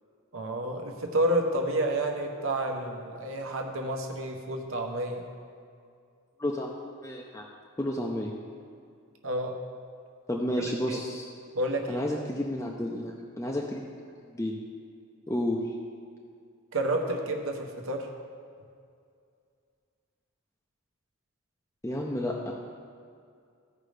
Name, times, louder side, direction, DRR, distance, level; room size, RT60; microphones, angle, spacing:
voice 1, 0.3-5.3 9.2-9.6 10.5-11.0 11.5-12.0 16.7-18.1, right 1 dB, 70° right, 3 dB, 0.9 m, -30 dB
voice 2, 6.4-6.7 7.0-7.4 7.8-8.3 10.3-11.3 11.9-13.8 14.3-14.6 15.3-15.7 21.8-22.5, left 1 dB, 15° left, -1 dB, 0.5 m, -31 dB
14.5 x 5.1 x 3.3 m, 2.3 s
head